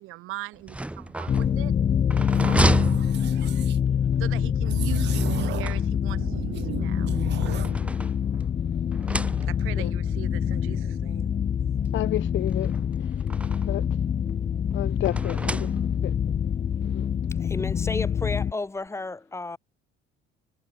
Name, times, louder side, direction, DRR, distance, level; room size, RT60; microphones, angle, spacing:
voice 1, 0.0-1.7 4.2-7.1 9.5-11.3, right 19 dB, 80° right, 4.6 m, -40 dB
sound 1, 0.5-3.8 5.1-6.3 7.1-8.5 8.9-9.8 10.8-10.9 11.2-11.3 12.5-13.8 15.0-16.2, right 1 dB, 5° right, 1.4 m, -31 dB
sound 2, 1.3-18.5, left 8 dB, 30° left, 0.8 m, -26 dB
sound 3, 2.3-3.8 4.7-5.8 6.1-7.8, right 13 dB, 55° right, 1.4 m, -35 dB
voice 2, 11.9-12.7 13.0-13.1 13.7-13.8 14.7-15.7 16.0-16.1 16.8-17.1, left 15 dB, 65° left, 2.9 m, -31 dB
voice 3, 17.4-19.6, left 3 dB, 15° left, 3.0 m, -32 dB
cardioid pair, 130°, 21 cm